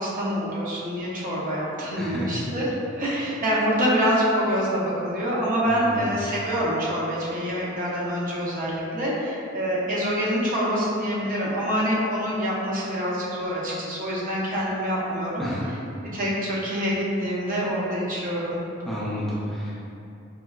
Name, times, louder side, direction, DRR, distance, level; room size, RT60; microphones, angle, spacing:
voice 1, 0.0-18.6, equal, 45° right, -6 dB, 0.6 m, -26 dB
voice 2, 2.0-2.5 5.6-6.1 15.4-15.8 18.9-19.7, equal, ahead, -9 dB, 0.4 m, -31 dB
4.4 x 2.2 x 2.2 m, 2.7 s
head